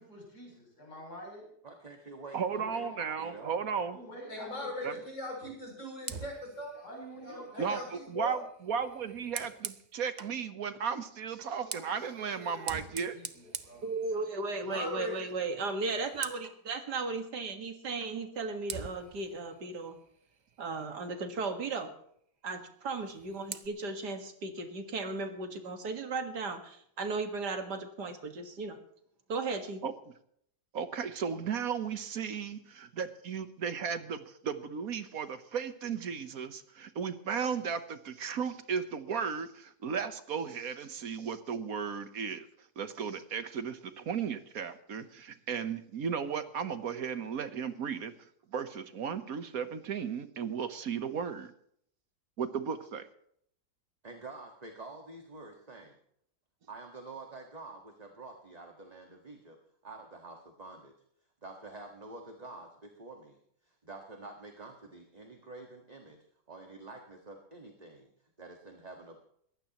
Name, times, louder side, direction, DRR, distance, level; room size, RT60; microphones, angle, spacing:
voice 1, 0.0-1.5 2.6-5.4 6.7-8.0 11.6-13.9, equal, 70° left, -2 dB, 8.5 m, -48 dB
voice 2, 1.6-2.9 3.2-3.5 54.0-56.0 56.7-59.6 59.8-60.9 61.4-66.2 66.5-68.1 68.4-69.2, right 3 dB, 25° right, 3 dB, 1.7 m, -48 dB
voice 3, 2.3-4.0 4.8-4.9 7.6-7.8 8.1-13.1 29.8-29.9 30.7-42.5 42.8-48.1 48.5-51.5 52.4-53.1, right 6 dB, 60° right, 11 dB, 1.5 m, -35 dB
voice 4, 4.3-6.8 7.2-7.4 7.7-8.4 14.6-15.2, left 1 dB, 50° left, -1 dB, 7.2 m, -39 dB
Fire, 6.0-10.4 11.3-14.6 14.9-15.2 15.5-16.6 18.0-18.1 18.7-21.0 22.9-23.7, right 6 dB, 45° right, 0.6 m, -45 dB
voice 5, 13.8-20.0 20.6-21.9 22.4-28.8 29.3-29.8, right 3 dB, 80° right, 6 dB, 2.4 m, -36 dB
21.5 x 16.0 x 3.0 m, 0.67 s
omnidirectional pair, 1.7 m